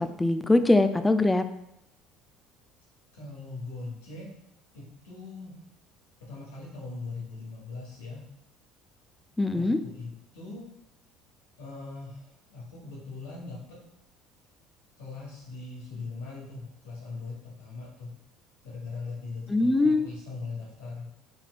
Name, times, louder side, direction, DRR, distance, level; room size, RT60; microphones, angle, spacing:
voice 1, 0.0-1.4 9.4-9.8 19.5-20.1, left 2 dB, 10° left, 10 dB, 0.4 m, -22 dB
voice 2, 3.1-4.3 4.7-5.5 6.2-8.2 9.5-10.7 11.6-13.8 15.0-18.1 18.6-21.1, left 3 dB, 80° left, -4 dB, 1.6 m, -40 dB
4.3 x 3.9 x 2.5 m, 0.82 s
hypercardioid pair, 75°, 0 cm